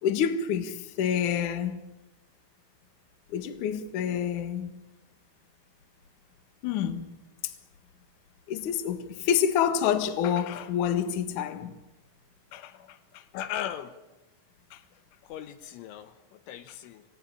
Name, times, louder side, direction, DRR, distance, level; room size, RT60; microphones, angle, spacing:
voice 1, 0.0-1.8 3.3-4.7 6.6-7.1 8.5-11.7 12.5-12.7 13.1-13.2 14.7-14.8, left 8 dB, 60° left, 2.2 m, -28 dB
voice 2, 13.3-14.0 15.3-17.1, left 10 dB, 75° left, 3.3 m, -37 dB
26.5 x 18.0 x 10.0 m
omnidirectional pair, 5.9 m